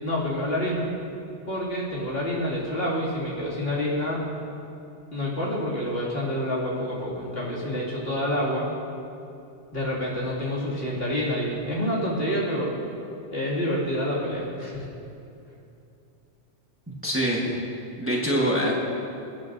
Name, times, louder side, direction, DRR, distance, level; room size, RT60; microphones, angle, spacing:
voice 1, 0.0-0.9 1.5-4.2 5.1-8.7 9.7-12.8 13.3-14.9, equal, 60° left, -6 dB, 2.7 m, -28 dB
voice 2, 16.9-17.5 18.0-18.7, equal, 10° right, -3 dB, 1.3 m, -24 dB
25.0 x 8.5 x 2.6 m, 2.7 s
omnidirectional pair, 1.1 m